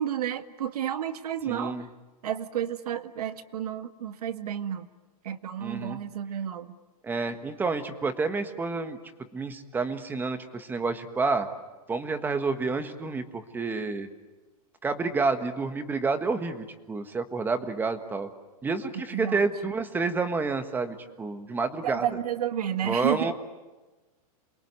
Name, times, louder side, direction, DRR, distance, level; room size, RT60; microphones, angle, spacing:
voice 1, 0.0-1.8 2.2-4.9 5.2-6.8 19.1-19.5 21.8-23.3, right 10 dB, 80° right, 10 dB, 1.8 m, -31 dB
voice 2, 1.5-1.9 5.6-6.0 7.0-9.0 9.3-11.5 11.9-14.1 14.8-18.3 18.6-22.1 22.8-23.3, right 4 dB, 10° right, 9 dB, 1.4 m, -29 dB
28.0 x 22.5 x 9.5 m, 1.2 s
supercardioid pair, 155°, 19 cm